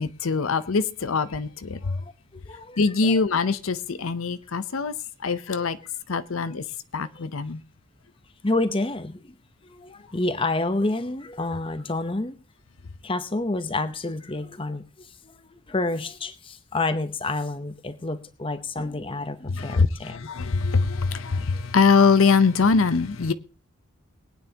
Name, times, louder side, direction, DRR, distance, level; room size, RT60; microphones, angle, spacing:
voice 1, 0.0-2.0 2.8-4.9 5.2-5.8 6.1-6.6 6.9-7.6 19.5-23.3, left 4 dB, 80° left, 0.7 m, -23 dB
voice 2, 1.8-3.2 5.5-5.7 6.3-6.5 8.4-9.3 9.6-12.3 13.0-20.2 21.5-21.6, left 2 dB, 25° left, 0.8 m, -29 dB
22.0 x 9.4 x 2.9 m
head